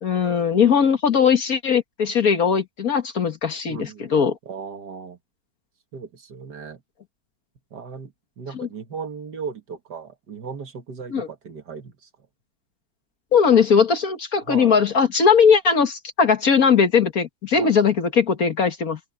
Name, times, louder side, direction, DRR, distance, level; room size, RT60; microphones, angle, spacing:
voice 1, 0.0-4.4 8.6-8.7 11.1-11.3 13.3-19.0, left 6 dB, 50° left, 1.7 m, -19 dB
voice 2, 3.7-4.0 4.4-5.2 5.9-6.8 7.7-12.1 14.4-14.8 17.5-17.7, right 5 dB, 55° right, 2.2 m, -36 dB
open air
omnidirectional pair, 2.1 m